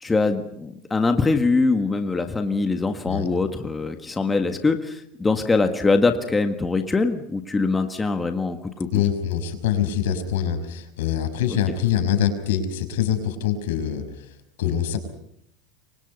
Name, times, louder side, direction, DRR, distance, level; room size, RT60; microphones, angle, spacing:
voice 1, 0.0-8.9, left 3 dB, 10° left, 6 dB, 1.6 m, -23 dB
voice 2, 8.9-15.0, left 9 dB, 80° left, 7 dB, 5.7 m, -24 dB
28.0 x 24.0 x 5.5 m, 0.72 s
supercardioid pair, 155°, 0 cm